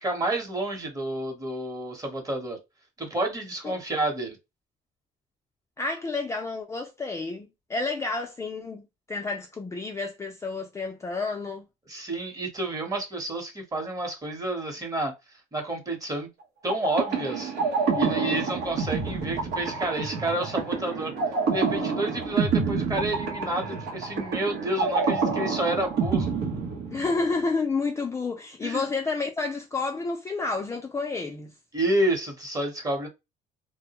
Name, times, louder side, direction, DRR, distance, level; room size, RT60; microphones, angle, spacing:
voice 1, 0.0-2.6 3.0-4.4 11.9-15.1 15.5-16.3 16.6-17.5 17.9-21.1 21.5-26.3 28.6-28.8 31.7-33.1, right 1 dB, 20° right, 0.9 m, -29 dB
voice 2, 5.8-11.6 26.9-31.5, left 3 dB, 15° left, 0.4 m, -30 dB
sound 1, 16.7-27.4, right 5 dB, 85° right, 0.9 m, -28 dB
2.2 x 2.1 x 2.8 m
cardioid pair, 110°, 17 cm